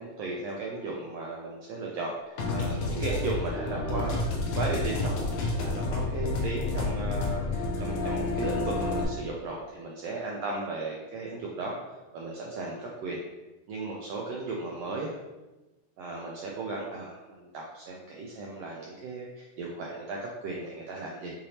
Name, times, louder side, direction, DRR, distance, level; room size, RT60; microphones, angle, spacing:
voice 1, 0.0-5.2 5.6-11.7 12.1-13.2 13.7-15.2 16.0-21.3, right 3 dB, 85° right, -2 dB, 1.4 m, -36 dB
sound 1, 2.4-9.0, left 3 dB, 80° left, 1.2 m, -30 dB
6.6 x 2.8 x 2.8 m, 1.1 s
omnidirectional pair, 3.4 m